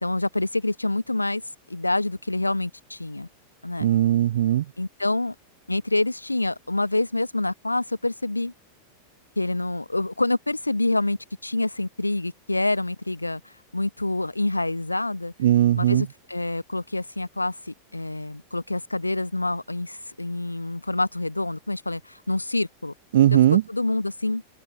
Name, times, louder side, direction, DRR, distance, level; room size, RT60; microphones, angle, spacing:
voice 1, 0.0-1.4 1.7-3.3 3.6-3.9 4.8-5.3 5.7-8.5 9.4-15.3 15.8-22.9 23.3-23.4 23.7-24.4, left 2 dB, 85° left, 1.1 m, -27 dB
voice 2, 3.8-4.6 15.4-16.1 23.1-23.6, right 12 dB, 60° right, 0.6 m, -18 dB
open air
figure-of-eight pair, 90°, 0 cm